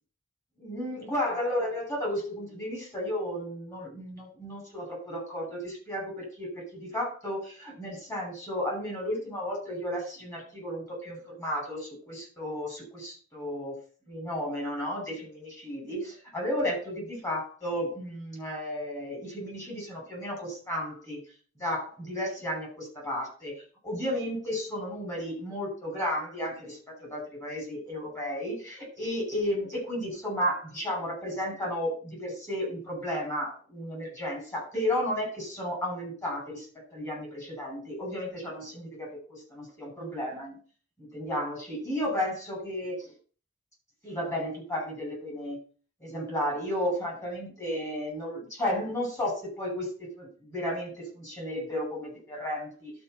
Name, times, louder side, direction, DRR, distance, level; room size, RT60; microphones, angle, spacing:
voice 1, 0.6-13.8 14.1-21.2 21.6-23.6 23.8-36.7 36.9-40.6 41.0-43.1 44.0-45.6 46.0-52.9, left 1 dB, 15° left, -2 dB, 6.1 m, -33 dB
11.5 x 5.2 x 6.6 m, 0.40 s
head